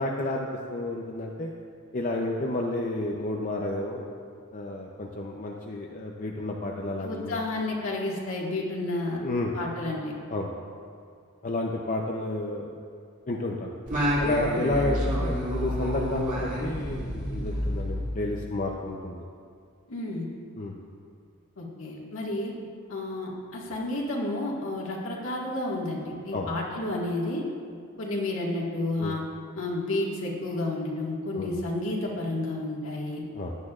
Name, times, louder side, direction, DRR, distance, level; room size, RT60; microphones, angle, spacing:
voice 1, 0.0-1.5 1.9-4.1 4.5-7.4 9.2-9.6 10.3-10.5 11.4-12.7 13.3-13.7 14.2-19.2 20.6-20.8 26.3-26.5 29.0-29.2 31.3-31.5 33.3-33.6, left 2 dB, 40° left, -1 dB, 0.6 m, -31 dB
voice 2, 7.0-9.2 9.5-10.1 14.5-14.6 19.9-20.3 21.6-22.5 22.9-27.4 28.0-29.3 29.5-33.2, left 2 dB, 70° left, -3 dB, 1.9 m, -31 dB
Singing, 13.9-18.6, equal, 35° right, 2.3 m, -29 dB
16.0 x 10.5 x 2.5 m, 2.3 s
head